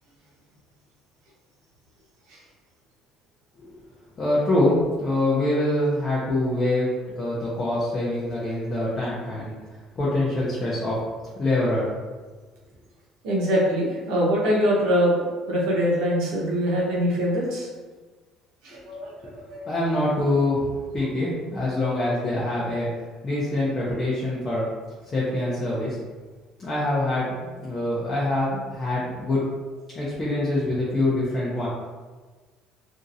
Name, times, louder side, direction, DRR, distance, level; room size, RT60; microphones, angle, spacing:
voice 1, 4.2-6.9 7.2-9.5 10.0-11.0 11.4-11.9 19.2-19.3 19.7-22.9 23.2-24.7 25.1-26.0 26.6-29.4 30.0-31.7, left 1 dB, 25° left, -8 dB, 0.5 m, -25 dB
voice 2, 13.2-17.7 18.6-19.1 19.5-19.6, equal, 85° right, -4 dB, 0.9 m, -23 dB
2.9 x 2.6 x 2.5 m, 1.4 s
cardioid pair, 155°, 0 cm